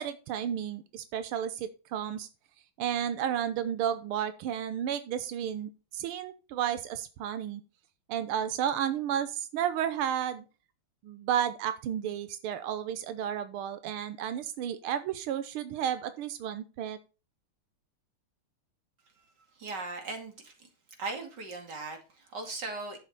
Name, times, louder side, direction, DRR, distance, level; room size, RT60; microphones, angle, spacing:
voice 1, 0.0-2.3 2.8-7.6 8.1-10.4 11.0-17.0, right 9 dB, 90° right, 11 dB, 1.7 m, -32 dB
voice 2, 19.6-20.7 21.0-23.0, right 3 dB, 55° right, 4 dB, 2.8 m, -38 dB
11.0 x 7.8 x 4.0 m, 0.32 s
omnidirectional pair, 2.3 m